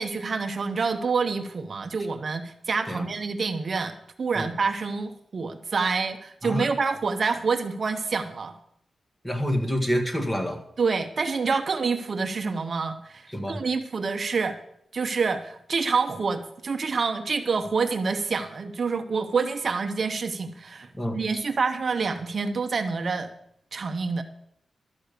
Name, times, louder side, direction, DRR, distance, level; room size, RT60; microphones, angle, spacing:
voice 1, 0.0-8.6 10.8-14.6 14.9-20.9 21.1-23.3 23.7-24.2, right 4 dB, 50° right, 7 dB, 0.9 m, -27 dB
voice 2, 9.2-10.6 13.3-13.6 20.9-21.2, equal, 15° left, 4 dB, 1.8 m, -27 dB
12.5 x 8.6 x 6.7 m, 0.71 s
wide cardioid pair, 135°, 0 cm